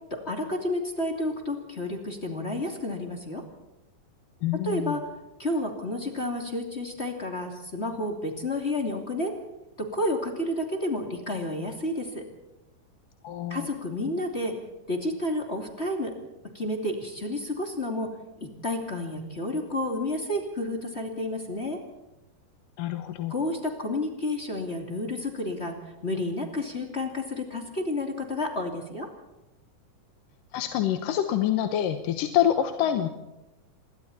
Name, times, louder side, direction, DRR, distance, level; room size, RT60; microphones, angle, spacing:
voice 1, 0.1-3.4 4.6-5.0 5.4-9.3 9.8-12.2 13.5-14.5 14.9-16.1 16.5-18.1 18.6-21.8 23.3-25.7 26.0-29.1, left 1 dB, 20° left, 2 dB, 2.6 m, -30 dB
voice 2, 4.4-5.0 13.2-13.7 22.8-23.3 30.5-33.1, left 11 dB, 85° left, 7 dB, 2.8 m, -26 dB
27.5 x 22.5 x 4.3 m, 0.98 s
omnidirectional pair, 3.8 m